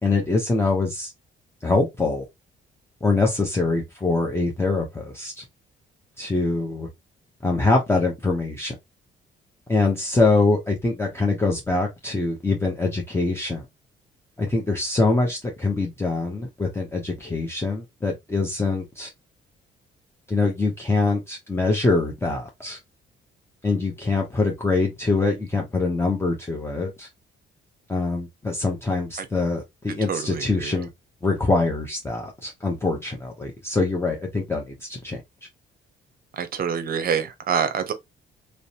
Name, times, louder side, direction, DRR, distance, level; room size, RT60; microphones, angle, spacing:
voice 1, 0.0-1.1 1.6-2.2 3.0-5.4 6.2-6.9 7.4-8.7 9.7-13.6 14.4-19.1 20.3-22.8 23.6-27.1 27.9-30.9 31.2-35.2, left 3 dB, 10° left, 0.6 m, -24 dB
voice 2, 30.1-30.8 36.3-37.9, right 7 dB, 50° right, 0.6 m, -26 dB
2.5 x 2.0 x 2.7 m
cardioid pair, 90°, 20 cm